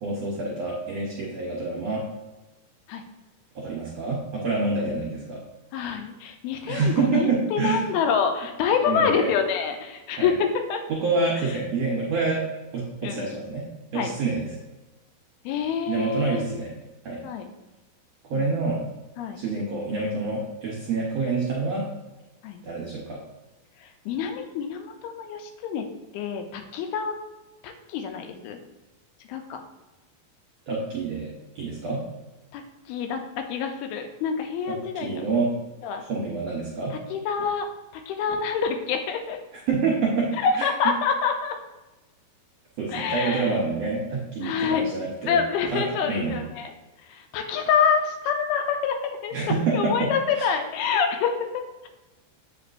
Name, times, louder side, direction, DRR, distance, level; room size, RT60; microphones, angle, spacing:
voice 1, 0.0-2.0 3.5-5.4 6.7-7.9 8.9-9.3 10.2-10.3 10.9-12.4 12.7-13.6 13.9-14.4 15.9-16.7 17.0-17.2 18.3-18.8 19.3-21.8 22.6-23.2 30.7-32.0 34.7-35.5 36.0-36.9 39.7-40.3 40.6-40.7 42.8-45.4 45.7-46.4 49.3-50.4, right 3 dB, 70° right, -5 dB, 1.6 m, -27 dB
voice 2, 5.7-10.8 13.0-13.3 14.0-14.1 15.5-16.4 17.2-17.5 18.3-18.5 19.2-19.4 22.4-22.6 23.8-25.9 26.1-27.2 27.6-28.6 29.3-29.6 32.5-32.6 32.9-35.2 35.8-36.0 37.1-37.7 38.1-39.4 40.4-41.6 42.9-43.5 44.4-44.8 45.3-46.7 47.0-51.9, left 6 dB, 85° left, 5 dB, 2.5 m, -26 dB
8.1 x 5.2 x 2.6 m, 1.1 s
omnidirectional pair, 4.4 m